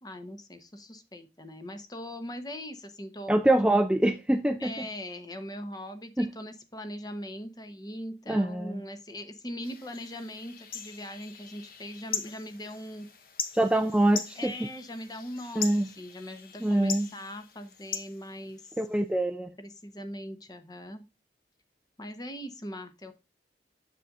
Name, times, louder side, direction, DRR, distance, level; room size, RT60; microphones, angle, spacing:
voice 1, 0.0-3.3 4.6-13.1 13.8-14.0 14.3-18.8 19.6-21.0 22.0-23.1, equal, 20° left, 0.8 m, -40 dB
voice 2, 3.3-4.7 6.2-6.3 8.3-8.8 13.5-14.5 15.6-15.9 16.6-17.1 18.8-19.5, right 1 dB, 5° right, 0.3 m, -24 dB
sound 1, 9.6-19.0, left 7 dB, 55° left, 0.9 m, -40 dB
7.5 x 6.6 x 2.4 m
head